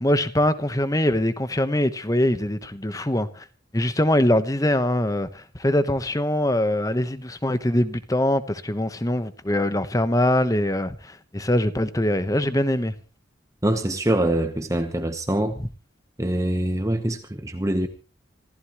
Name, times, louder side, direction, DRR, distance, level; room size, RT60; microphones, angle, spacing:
voice 1, 0.0-3.4 3.7-12.9, left 1 dB, 15° left, 1.1 m, -23 dB
voice 2, 13.6-15.6 16.2-17.9, right 1 dB, 15° right, 1.0 m, -24 dB
26.0 x 15.0 x 3.1 m
head